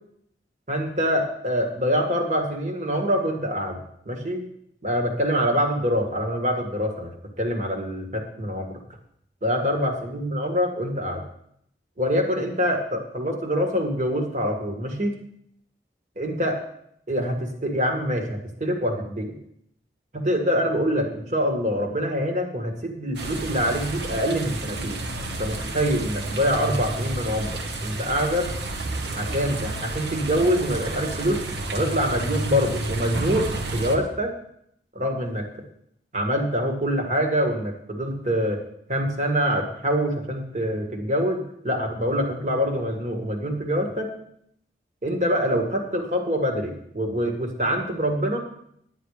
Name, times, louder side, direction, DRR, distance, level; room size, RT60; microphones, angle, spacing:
voice 1, 0.7-3.8 4.1-4.4 4.8-7.1 7.4-8.8 9.4-11.2 12.0-15.2 16.2-16.6 17.1-19.3 20.1-25.0 25.4-28.5 29.2-31.5 31.7-34.3 34.9-35.5 36.1-38.6 38.9-44.1 45.0-48.4, equal, 40° right, 3 dB, 1.9 m, -25 dB
sound 1, 23.1-34.0, right 2 dB, 80° right, 1.3 m, -30 dB
10.5 x 9.7 x 5.0 m, 0.71 s
head